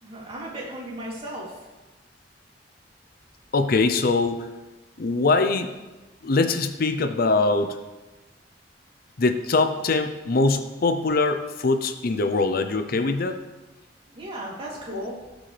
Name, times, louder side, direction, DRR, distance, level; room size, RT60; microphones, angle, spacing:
voice 1, 0.0-1.6 14.1-15.2, right 1 dB, 30° right, -5 dB, 2.9 m, -35 dB
voice 2, 3.5-4.4 5.0-5.7 6.2-7.8 9.2-13.4 14.9-15.0, left 3 dB, 55° left, 8 dB, 0.6 m, -22 dB
17.5 x 6.2 x 3.3 m, 1.2 s
head